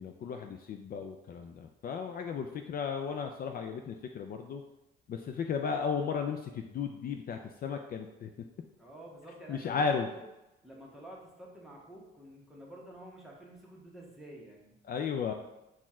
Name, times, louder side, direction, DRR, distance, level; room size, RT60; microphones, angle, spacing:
voice 1, 0.0-4.6 5.1-8.3 9.5-10.1 14.8-15.3, left 6 dB, 50° left, 5 dB, 0.4 m, -34 dB
voice 2, 8.8-10.3 10.6-14.8, right 1 dB, ahead, -4 dB, 1.2 m, -50 dB
4.3 x 2.4 x 4.2 m, 0.95 s
cardioid pair, 90°, 20 cm